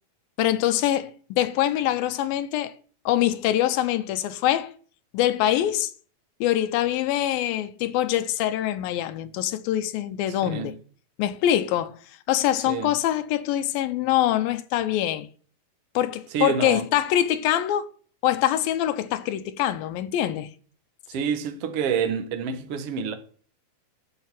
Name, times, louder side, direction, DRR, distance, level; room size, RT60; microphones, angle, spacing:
voice 1, 0.4-2.7 3.1-4.7 5.1-5.9 6.4-10.8 11.2-12.0 12.3-15.3 16.0-17.9 18.2-20.5, left 12 dB, 80° left, 2.5 m, -24 dB
voice 2, 10.4-10.7 12.7-12.9 16.3-16.9 21.1-23.1, right 7 dB, 55° right, 1.8 m, -27 dB
11.0 x 5.7 x 8.3 m
omnidirectional pair, 4.3 m